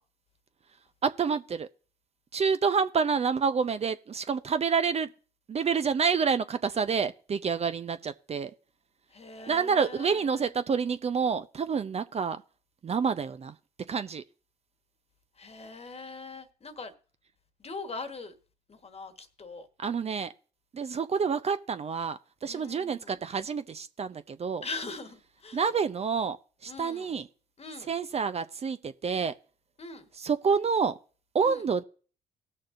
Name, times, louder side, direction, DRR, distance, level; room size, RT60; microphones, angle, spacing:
voice 1, 1.0-1.7 2.3-5.1 5.5-8.5 9.5-12.4 12.8-13.5 13.9-14.2 19.8-20.3 20.7-24.6 25.5-26.4 26.6-27.3 27.9-29.3 30.2-30.9 31.3-31.8, right 6 dB, 40° right, 0.6 m, -28 dB
voice 2, 9.1-10.5 15.4-16.9 17.6-18.3 18.7-19.7 22.4-23.2 24.6-25.6 26.7-27.2 27.6-28.0 29.8-30.1 31.4-31.7, left 3 dB, 40° left, 1.4 m, -42 dB
19.0 x 6.5 x 2.6 m
hypercardioid pair, 50°, 16 cm